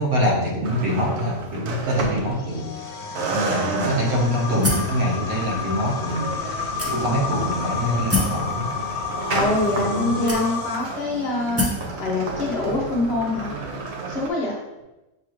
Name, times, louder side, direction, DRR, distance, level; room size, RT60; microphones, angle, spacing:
voice 1, 0.0-2.7 3.3-6.2 6.9-8.6 9.7-10.4, equal, 80° right, -3 dB, 1.5 m, -24 dB
sound 1, 0.6-2.8 3.2-14.3, right 3 dB, 60° right, 0.8 m, -31 dB
sound 2, 2.3-10.8, left 5 dB, 85° left, 1.1 m, -31 dB
sound 3, 4.6-5.0 5.7-5.8 6.8-7.3 8.1-8.4 9.4-9.5 10.3-10.8 11.6-11.9, left 1 dB, 20° right, 0.3 m, -25 dB
voice 2, 9.3-11.7 12.0-13.5 14.1-14.6, left 2 dB, 50° left, -3 dB, 0.9 m, -25 dB
6.7 x 2.4 x 3.0 m, 1.0 s
omnidirectional pair, 1.5 m